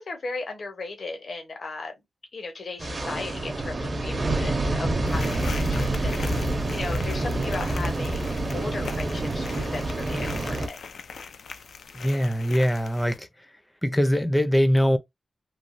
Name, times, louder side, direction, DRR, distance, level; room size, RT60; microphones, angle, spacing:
voice 1, 0.0-1.9 2.3-10.8, left 3 dB, 55° left, 0.8 m, -36 dB
sound 1, 2.8-10.7, right 2 dB, 35° right, 0.7 m, -27 dB
sound 2, 5.1-13.2, left 5 dB, 85° left, 0.4 m, -41 dB
voice 2, 11.9-13.3 13.8-15.0, equal, 10° left, 0.6 m, -22 dB
3.2 x 2.2 x 2.6 m
wide cardioid pair, 105°, 0 cm